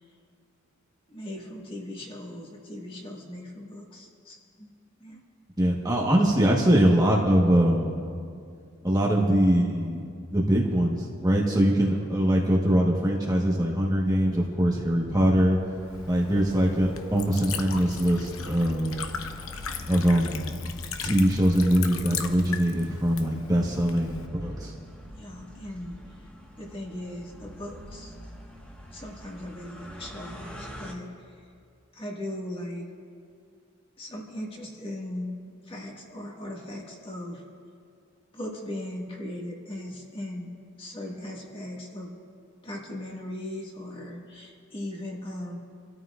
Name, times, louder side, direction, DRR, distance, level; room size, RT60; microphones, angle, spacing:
voice 1, 1.1-4.7 5.0-5.2 25.2-26.0 26.5-28.2 28.9-31.1 31.9-32.9 34.0-35.4 35.6-37.4 38.3-42.1 42.6-45.6, left 1 dB, 25° left, -2 dB, 1.8 m, -38 dB
voice 2, 5.6-8.0 8.8-10.0 10.3-15.6 16.0-19.0 19.9-20.6 21.0-24.7, equal, 20° right, -2 dB, 1.2 m, -23 dB
sound 1, 14.0-30.9, left 1 dB, 5° left, 1.4 m, -44 dB
Liquid, 15.7-24.3, left 7 dB, 90° left, 0.9 m, -39 dB
28.0 x 13.0 x 2.5 m, 2.3 s
head